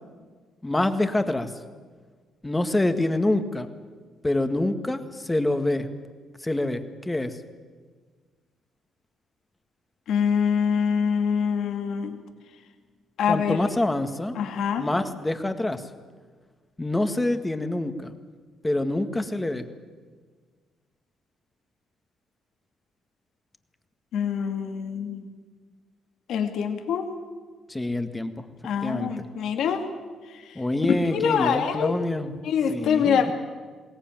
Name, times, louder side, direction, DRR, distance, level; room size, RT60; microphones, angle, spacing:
voice 1, 0.6-1.5 2.4-3.7 4.2-5.9 6.4-7.4 13.3-14.4 14.8-15.8 16.8-18.1 18.6-19.7 27.7-28.5 28.8-29.2 30.5-32.3 32.7-33.3, left 1 dB, 15° left, 8 dB, 1.8 m, -26 dB
voice 2, 10.1-12.2 13.2-13.6 14.4-14.9 24.1-25.2 26.3-27.1 28.6-29.8 31.1-31.9 32.4-33.3, left 7 dB, 80° left, 6 dB, 2.2 m, -25 dB
21.5 x 17.5 x 9.1 m, 1.5 s
cardioid pair, 90°, 0 cm